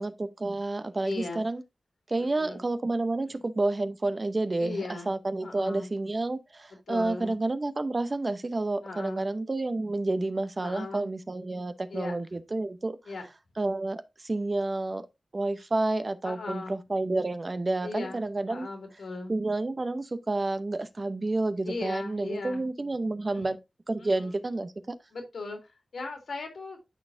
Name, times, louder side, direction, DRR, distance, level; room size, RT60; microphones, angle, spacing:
voice 1, 0.0-1.6 2.1-13.0 13.6-15.0 15.3-18.7 19.3-23.6 23.9-24.9, right 2 dB, 40° right, 0.7 m, -30 dB
voice 2, 1.0-1.4 2.2-2.6 3.3-3.4 4.6-5.1 5.4-5.9 6.9-7.3 8.8-9.3 10.6-11.1 11.9-12.1 13.1-13.2 16.2-16.8 17.8-19.3 21.6-22.7 23.3-23.5 24.0-24.3 25.1-25.6 25.9-26.8, left 3 dB, 90° left, 2.4 m, -38 dB
12.0 x 4.2 x 2.6 m
wide cardioid pair, 70°, 0 cm